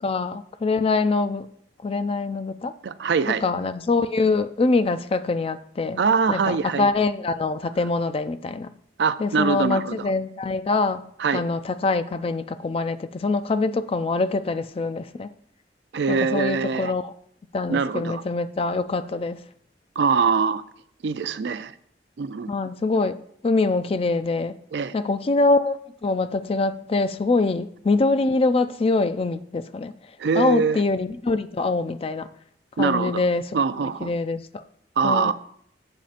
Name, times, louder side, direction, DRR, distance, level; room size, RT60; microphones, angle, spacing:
voice 1, 0.0-1.5 1.8-2.7 3.4-6.0 6.3-8.7 9.2-11.0 11.3-15.3 16.1-17.1 17.5-19.4 22.5-23.2 23.4-24.6 24.9-25.8 26.0-29.9 30.3-32.3 32.8-34.6 35.0-35.3, left 3 dB, 35° left, 12 dB, 0.4 m, -24 dB
voice 2, 2.8-3.4 6.0-6.9 9.0-10.1 11.2-11.4 15.9-16.9 17.7-18.2 20.0-20.6 21.0-21.7 22.2-22.5 24.7-24.9 30.2-30.8 32.8-33.2 33.5-34.1 35.0-35.3, right 5 dB, 70° right, 13 dB, 0.4 m, -23 dB
11.0 x 7.6 x 2.5 m, 0.67 s
head